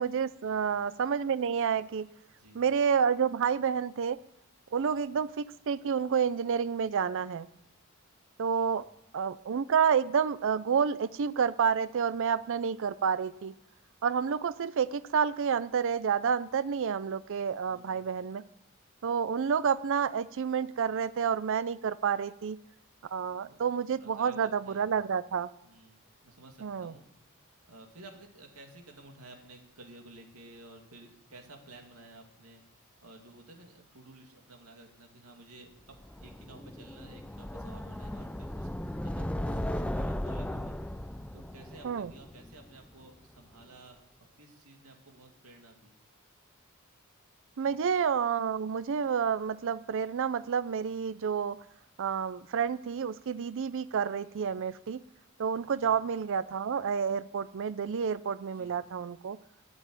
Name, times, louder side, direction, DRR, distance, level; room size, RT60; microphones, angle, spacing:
voice 1, 0.0-2.1 2.6-4.2 4.7-7.5 8.4-8.9 9.1-13.5 14.0-18.4 19.0-22.6 23.1-25.5 26.6-26.9 41.8-42.1 47.6-51.6 52.0-55.0 55.4-59.4, right 7 dB, 60° right, 16 dB, 0.4 m, -29 dB
voice 2, 2.3-2.6 4.8-5.0 8.4-8.7 17.7-18.0 23.5-23.6 24.0-24.9 25.6-32.6 33.0-38.7 39.0-45.9 47.5-47.8 54.2-54.5 55.7-55.9 58.5-58.7, right 2 dB, 85° right, 3 dB, 2.4 m, -54 dB
sound 1, 36.0-43.0, left 1 dB, 5° left, 0.4 m, -37 dB
12.5 x 8.1 x 9.0 m, 0.80 s
head